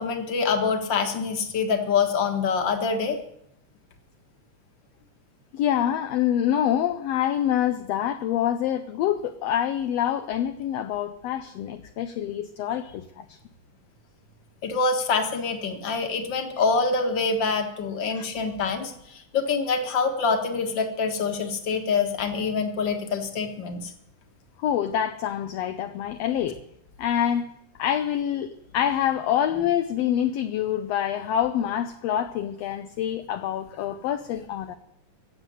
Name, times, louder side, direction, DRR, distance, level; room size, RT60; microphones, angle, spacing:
voice 1, 0.0-3.2 14.6-23.9, left 5 dB, 45° left, 2.0 m, -25 dB
voice 2, 5.5-13.4 18.1-18.3 24.6-26.6 27.0-27.4 27.8-34.8, left 10 dB, 75° left, 1.6 m, -26 dB
15.5 x 7.4 x 9.2 m
omnidirectional pair, 3.4 m